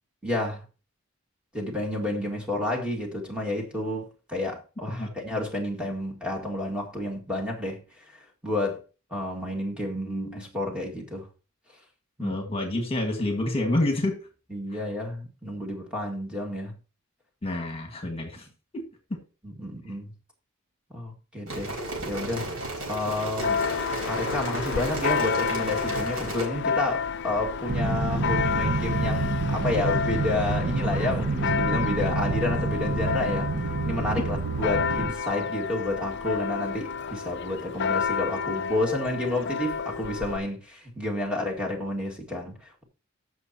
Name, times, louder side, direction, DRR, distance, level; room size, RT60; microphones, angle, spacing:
voice 1, 0.2-0.6 1.5-7.8 8.1-8.8 9.1-11.3 12.2-12.4 14.5-16.7 19.4-20.1 20.9-22.5 22.9-23.6 24.1-33.5 33.8-42.8, left 1 dB, 5° right, 2.0 m, -30 dB
voice 2, 12.2-14.2 14.7-14.8 17.4-18.4 18.7-18.8 19.1-19.2, left 1 dB, 25° left, 1.7 m, -28 dB
sound 1, 21.5-26.5, right 2 dB, 75° right, 4.2 m, -34 dB
Church bell, 23.4-40.4, left 6 dB, 55° left, 0.4 m, -30 dB
sound 2, 27.7-35.1, right 3 dB, 55° right, 0.8 m, -28 dB
15.0 x 6.4 x 2.9 m
head